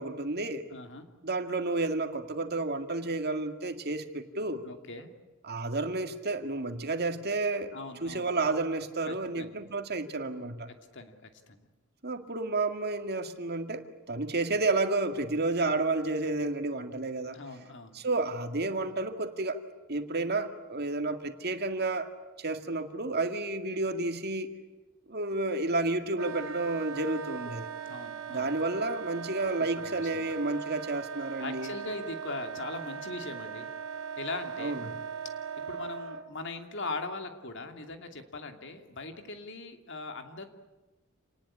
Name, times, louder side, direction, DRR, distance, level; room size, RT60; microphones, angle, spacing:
voice 1, 0.0-0.7 1.2-4.6 5.4-7.7 8.0-10.7 12.0-17.4 17.9-19.6 19.9-22.1 22.4-24.5 25.1-27.7 28.3-31.7 34.6-35.0, right 2 dB, 50° right, 7 dB, 2.1 m, -31 dB
voice 2, 0.7-1.1 4.6-5.1 7.7-8.3 9.1-9.6 10.9-11.6 17.3-18.0 27.8-28.5 29.6-30.2 31.4-33.7 34.2-34.9 35.7-40.4, left 3 dB, 60° left, 6 dB, 2.7 m, -40 dB
Wind instrument woodwind instrument, 26.1-36.3, right 6 dB, 70° right, 2.7 m, -39 dB
28.0 x 19.5 x 10.0 m, 1.1 s
head